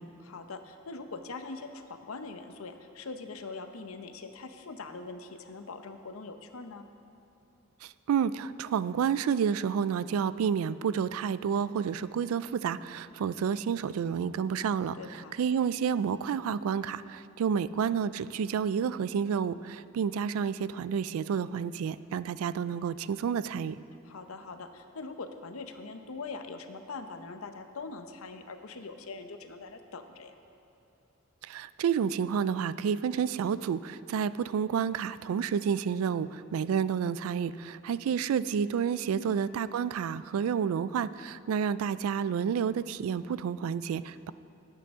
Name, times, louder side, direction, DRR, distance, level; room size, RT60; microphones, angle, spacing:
voice 1, 0.2-6.9 15.0-15.4 24.0-30.3 39.1-39.4, left 3 dB, 85° left, 8 dB, 0.7 m, -42 dB
voice 2, 7.8-23.8 31.4-44.3, right 7 dB, 85° right, 16 dB, 0.3 m, -30 dB
16.5 x 8.4 x 3.6 m, 2.7 s
head